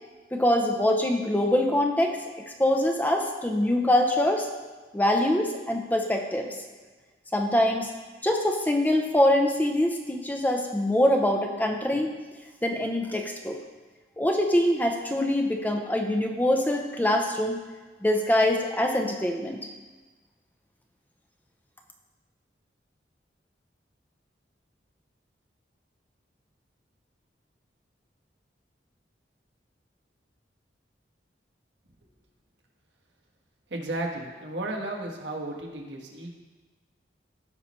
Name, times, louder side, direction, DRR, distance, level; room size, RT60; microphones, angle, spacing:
voice 1, 0.3-2.2 2.5-4.5 4.9-6.5 7.3-7.9 8.2-12.1 12.6-13.6 14.2-17.6 18.0-19.7, left 1 dB, 10° left, 3 dB, 0.6 m, -24 dB
voice 2, 33.7-36.3, right 1 dB, 75° right, 0 dB, 1.4 m, -34 dB
15.0 x 5.7 x 3.1 m, 1.3 s
head